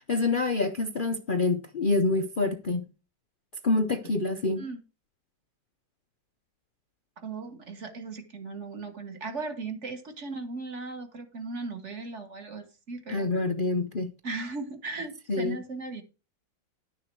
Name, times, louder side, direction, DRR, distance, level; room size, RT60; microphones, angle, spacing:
voice 1, 0.1-2.9 3.6-4.6 13.1-14.1 15.3-15.6, left 3 dB, 85° left, 0.4 m, -26 dB
voice 2, 7.2-13.3 14.2-16.0, right 3 dB, 40° right, 1.6 m, -37 dB
11.0 x 6.6 x 4.6 m
omnidirectional pair, 2.1 m